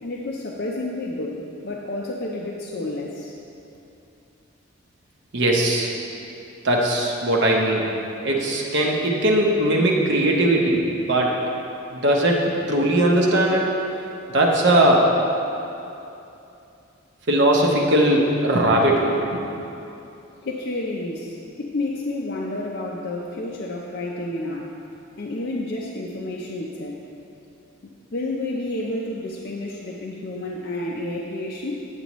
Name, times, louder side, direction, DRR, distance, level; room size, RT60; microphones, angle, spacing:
voice 1, 0.0-3.3 20.4-24.7 25.2-27.0 27.8-31.9, left 2 dB, 50° left, -3 dB, 0.5 m, -30 dB
voice 2, 5.3-5.9 6.6-7.9 8.2-11.4 11.9-13.7 14.3-15.1 17.3-19.2, right 1 dB, 55° right, -1 dB, 0.8 m, -19 dB
8.4 x 8.3 x 3.0 m, 2.8 s
head